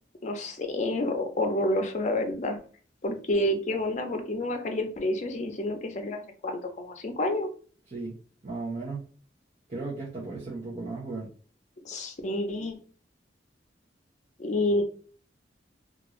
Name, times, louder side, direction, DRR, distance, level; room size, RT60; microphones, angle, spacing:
voice 1, 0.2-2.6 3.0-7.5 11.8-12.8 14.4-14.8, left 1 dB, 45° left, 4 dB, 0.6 m, -29 dB
voice 2, 8.4-9.1 9.7-11.3, right 3 dB, 40° right, -6 dB, 0.8 m, -35 dB
2.5 x 2.4 x 3.0 m, 0.41 s
head